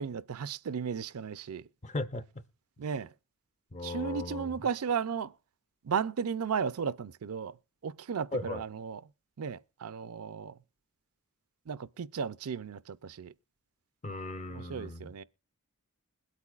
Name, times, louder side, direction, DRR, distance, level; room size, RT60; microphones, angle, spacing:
voice 1, 0.0-1.6 2.8-3.1 3.8-5.3 5.8-7.5 7.8-9.0 9.4-10.5 11.7-13.3 14.5-15.2, right 6 dB, 75° right, 0.5 m, -34 dB
voice 2, 1.8-2.4 3.7-4.6 8.3-8.6 14.0-15.1, left 2 dB, 30° left, 0.6 m, -37 dB
21.5 x 8.3 x 2.4 m
head